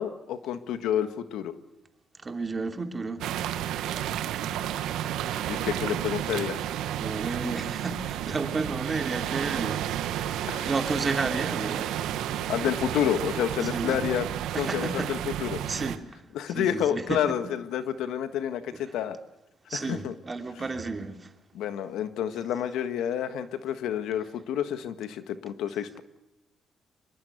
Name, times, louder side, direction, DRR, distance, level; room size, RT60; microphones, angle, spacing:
voice 1, 0.0-1.5 5.5-6.6 10.5-10.7 12.5-14.3 14.6-15.6 16.3-19.2 19.7-20.1 21.5-26.0, left 9 dB, 85° left, 1.6 m, -29 dB
voice 2, 2.2-3.2 7.0-9.8 10.2-11.9 13.6-14.1 14.5-15.1 15.7-17.4 19.7-21.3, right 3 dB, 30° right, 2.9 m, -32 dB
sound 1, 3.2-16.0, right 11 dB, 90° right, 1.3 m, -31 dB
24.5 x 22.0 x 8.0 m
cardioid pair, 90°, 0 cm